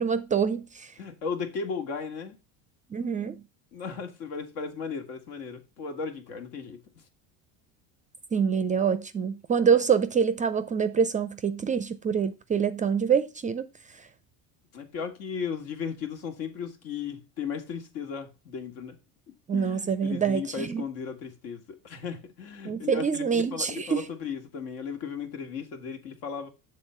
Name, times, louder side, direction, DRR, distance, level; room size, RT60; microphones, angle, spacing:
voice 1, 0.0-0.9 2.9-3.4 8.3-13.7 19.5-20.8 22.6-24.1, right 6 dB, 20° right, 0.4 m, -26 dB
voice 2, 1.0-2.4 3.7-6.8 14.7-19.0 19.5-26.5, left 6 dB, 70° left, 1.7 m, -36 dB
7.2 x 3.8 x 5.6 m
supercardioid pair, 110°, 37 cm